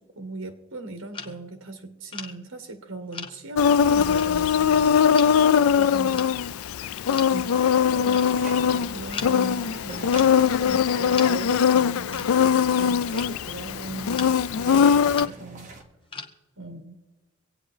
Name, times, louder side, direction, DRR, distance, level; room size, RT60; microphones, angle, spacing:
voice 1, 0.0-5.3 5.6-6.3 7.3-15.7 16.6-17.0, right 2 dB, 75° right, 1.4 m, -39 dB
sound 1, 1.1-1.7 2.1-2.3 3.1-3.6 4.1-4.3 5.1-5.4 6.1-6.4 7.1-7.4 8.1-8.4 9.1-9.4 10.1-10.5 11.1-11.4 12.1-12.3 13.1-13.4 14.1-14.3 15.1-15.3 16.1-16.4, left 4 dB, 25° left, 0.9 m, -38 dB
Insect, 3.6-15.3, left 7 dB, 90° left, 0.4 m, -21 dB
sound 2, 7.4-15.8, right 2 dB, 40° right, 1.5 m, -44 dB
25.0 x 8.9 x 3.3 m
head